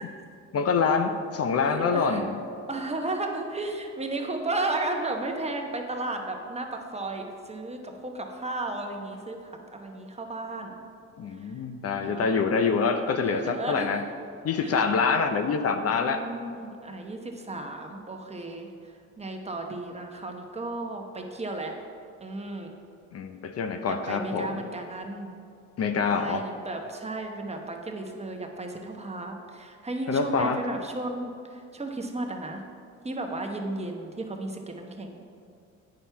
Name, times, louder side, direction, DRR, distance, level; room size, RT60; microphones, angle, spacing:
voice 1, 0.5-2.3 11.2-14.0 14.4-16.2 23.1-24.6 25.8-26.5 30.1-30.6, left 5 dB, 55° left, 7 dB, 0.6 m, -26 dB
voice 2, 1.6-2.2 2.7-10.8 11.4-11.5 12.0-12.4 13.2-14.0 14.6-14.8 16.0-21.7 22.2-22.7 23.9-25.4 26.1-32.6 33.0-35.2, right 2 dB, 20° right, 3 dB, 1.0 m, -34 dB
8.5 x 5.9 x 4.6 m, 2.4 s
cardioid pair, 90°, 30 cm